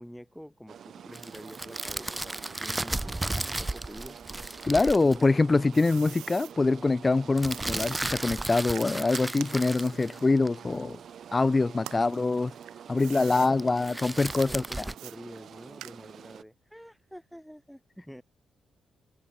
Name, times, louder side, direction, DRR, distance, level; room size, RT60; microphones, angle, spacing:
voice 1, 0.0-3.2 3.6-4.2 11.9-12.1 12.9-13.6 14.4-18.2, equal, ahead, 2.1 m, -47 dB
sound 1, 0.7-16.4, right 8 dB, 65° right, 5.9 m, -47 dB
sound 2, 1.1-5.2 7.4-10.5 13.6-14.9, right 2 dB, 20° right, 1.4 m, -34 dB
voice 2, 4.6-11.0 11.3-12.5 12.9-14.6, left 3 dB, 30° left, 0.6 m, -24 dB
sound 3, 5.1-6.5 7.4-11.3 11.7-13.5 14.3-14.5 15.0-16.3, right 15 dB, 80° right, 0.7 m, -46 dB
hypercardioid pair, 40°, 0 cm